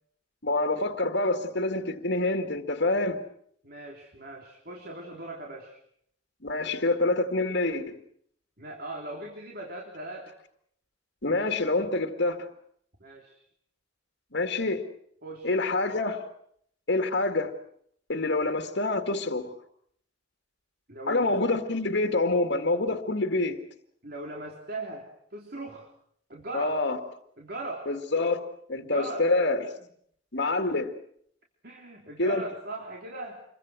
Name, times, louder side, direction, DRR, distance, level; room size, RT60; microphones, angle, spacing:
voice 1, 0.4-3.2 6.4-8.0 11.2-12.5 14.3-14.8 15.4-16.3 16.9-17.5 18.1-19.5 21.1-23.6 26.5-27.0 27.9-28.4 28.7-29.7 30.3-30.9 32.2-32.4, left 2 dB, 60° left, 6 dB, 2.1 m, -26 dB
voice 2, 3.6-5.8 8.6-10.3 13.0-13.4 15.2-15.5 20.9-21.4 24.0-25.9 26.3-26.8 27.4-27.9 28.8-29.3 30.6-30.7 31.6-33.4, right 2 dB, 50° right, 1 dB, 3.4 m, -39 dB
27.5 x 23.5 x 6.3 m, 0.66 s
head